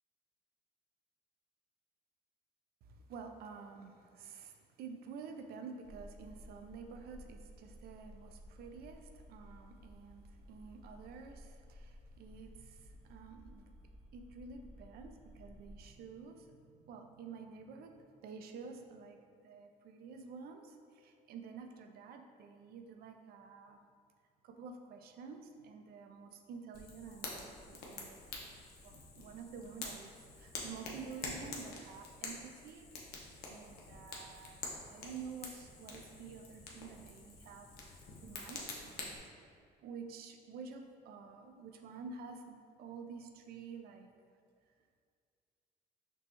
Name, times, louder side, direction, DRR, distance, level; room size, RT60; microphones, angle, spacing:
voice 1, 2.8-13.7 14.1-23.8 24.4-28.2 28.8-34.6 34.9-37.7 38.0-39.2 39.8-44.1, right 5 dB, 65° right, 5 dB, 0.4 m, -50 dB
sound 1, 5.8-15.9, equal, 20° right, 0.8 m, -55 dB
Fire, 26.7-39.2, left 3 dB, 65° left, 0.8 m, -47 dB
6.0 x 2.2 x 2.9 m, 2.2 s
cardioid pair, 110°, 17 cm